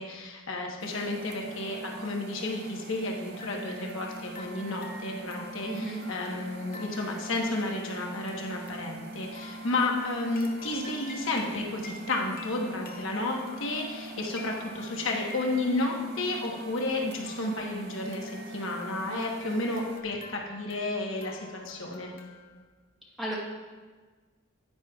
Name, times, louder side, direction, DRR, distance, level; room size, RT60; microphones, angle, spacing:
voice 1, 0.0-22.1, left 2 dB, 65° left, 0 dB, 1.2 m, -32 dB
sound 1, 0.8-20.0, right 2 dB, 50° right, 0.6 m, -43 dB
sound 2, 3.3-22.6, left 2 dB, 45° left, 0.9 m, -50 dB
voice 2, 5.6-6.1 23.2-23.4, right 1 dB, ahead, -6 dB, 1.1 m, -33 dB
9.7 x 9.4 x 2.4 m, 1.4 s
head